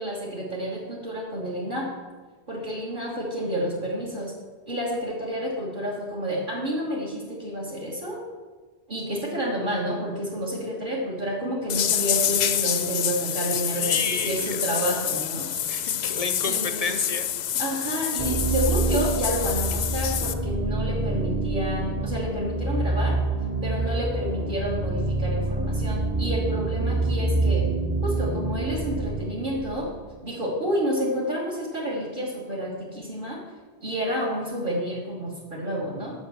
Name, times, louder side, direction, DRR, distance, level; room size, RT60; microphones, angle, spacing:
voice 1, 0.0-1.9 2.5-4.3 4.7-8.2 8.9-15.5 16.4-16.9 17.5-23.2 23.6-27.7 28.0-29.9 30.2-33.4 33.8-36.1, equal, 50° right, -4 dB, 1.7 m, -29 dB
sound 1, 11.7-20.3, left 10 dB, 75° left, 0.8 m, -27 dB
voice 2, 13.5-14.7 15.7-17.3, left 4 dB, 45° left, 9 dB, 0.5 m, -31 dB
sound 2, 18.2-30.1, right 2 dB, 10° right, 0.8 m, -26 dB
7.1 x 6.4 x 7.0 m, 1.4 s
omnidirectional pair, 1.1 m